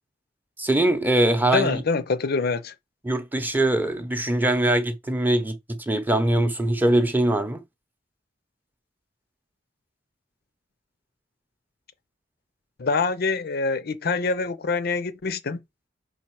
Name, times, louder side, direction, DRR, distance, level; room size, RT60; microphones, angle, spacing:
voice 1, 0.6-1.8 3.0-7.6, right 1 dB, 10° right, 0.7 m, -22 dB
voice 2, 1.4-2.7 12.8-15.6, left 4 dB, 55° left, 0.5 m, -25 dB
5.3 x 4.2 x 4.6 m
head